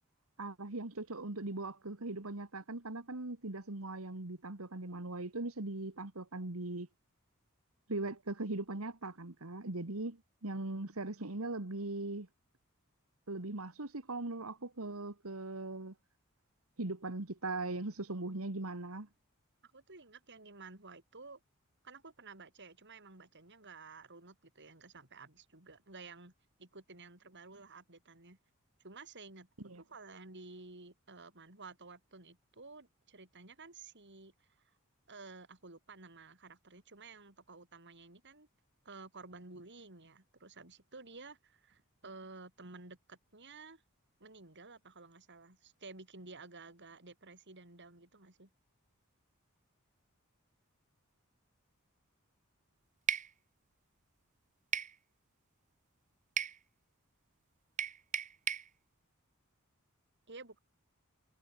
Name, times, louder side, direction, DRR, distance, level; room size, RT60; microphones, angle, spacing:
voice 1, 0.4-6.9 7.9-12.3 13.3-15.9 16.8-19.1 29.6-29.8, right 2 dB, 75° right, 1.9 m, -40 dB
voice 2, 19.6-21.4 21.8-26.3 26.6-28.4 28.8-34.7 35.1-38.5 38.8-43.8 44.2-48.5 60.3-60.6, right 3 dB, 55° right, 6.4 m, -53 dB
sound 1, 53.1-53.3 54.7-55.0 56.4-56.6 57.8-58.7, right 8 dB, 35° right, 0.8 m, -35 dB
head